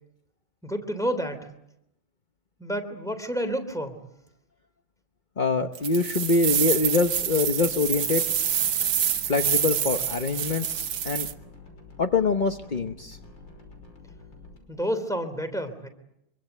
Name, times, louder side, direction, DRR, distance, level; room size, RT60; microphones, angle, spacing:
voice 1, 0.6-1.5 2.6-4.0 14.7-15.9, equal, ahead, 8 dB, 3.0 m, -30 dB
voice 2, 5.4-8.2 9.3-11.3 12.0-13.2, left 4 dB, 40° left, 6 dB, 0.7 m, -25 dB
sound 1, 5.8-11.3, right 9 dB, 65° right, 1.9 m, -27 dB
sound 2, 6.5-14.6, left 3 dB, 60° left, 6.4 m, -48 dB
25.5 x 24.0 x 8.0 m, 0.82 s
omnidirectional pair, 2.3 m